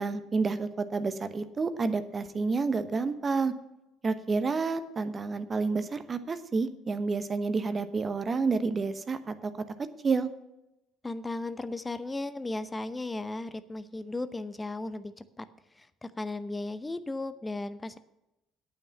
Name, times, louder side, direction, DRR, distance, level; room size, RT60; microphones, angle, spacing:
voice 1, 0.0-3.5 4.0-9.5 10.0-10.3, right 4 dB, 30° right, 11 dB, 1.0 m, -29 dB
voice 2, 11.0-15.4 15.8-18.0, left 2 dB, 15° left, 13 dB, 0.8 m, -36 dB
8.9 x 8.9 x 7.1 m, 0.92 s
figure-of-eight pair, 55°, 0 cm